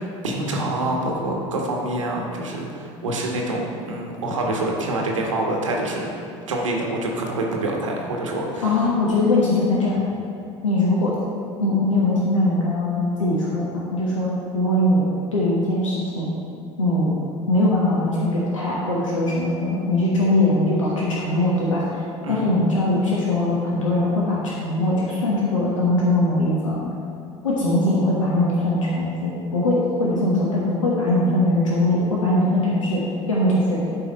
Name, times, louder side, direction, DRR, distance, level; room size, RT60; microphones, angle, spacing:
voice 1, 0.0-6.1 6.5-8.7 22.2-22.6, right 1 dB, 85° right, 0 dB, 1.3 m, -26 dB
voice 2, 8.6-10.0 10.6-11.1 11.6-15.0 15.3-16.3 16.8-17.1 17.5-21.8 22.3-26.8 27.4-33.0 33.3-33.8, left 1 dB, 85° left, -5 dB, 1.2 m, -21 dB
11.0 x 4.7 x 4.2 m, 2.4 s
hypercardioid pair, 70°, 16 cm